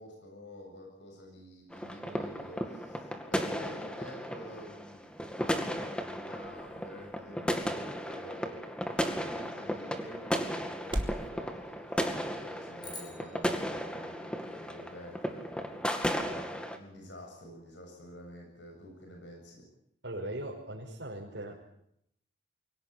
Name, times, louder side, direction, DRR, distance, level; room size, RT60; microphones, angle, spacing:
voice 1, 0.0-8.6 9.2-15.8 16.2-19.7, left 1 dB, 80° left, 2 dB, 7.8 m, -49 dB
sound 1, 1.7-16.8, equal, 5° left, 2.2 m, -35 dB
sound 2, 5.0-11.3, equal, 25° right, 2.6 m, -44 dB
sound 3, 12.8-15.2, left 2 dB, 25° left, 6.6 m, -50 dB
voice 2, 20.0-21.7, right 1 dB, 90° right, -4 dB, 5.3 m, -39 dB
23.5 x 18.5 x 9.4 m, 0.74 s
head